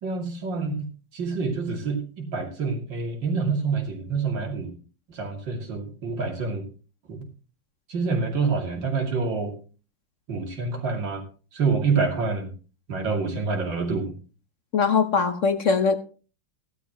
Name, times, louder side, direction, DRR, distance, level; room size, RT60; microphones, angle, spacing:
voice 1, 0.0-0.9 1.1-4.7 5.1-6.6 7.1-7.2 7.9-9.5 10.3-11.2 11.5-12.5 12.9-14.1, right 4 dB, 90° right, 2 dB, 3.3 m, -27 dB
voice 2, 14.7-16.0, left 5 dB, 50° left, 9 dB, 1.1 m, -21 dB
15.5 x 12.0 x 3.0 m, 0.35 s
omnidirectional pair, 2.0 m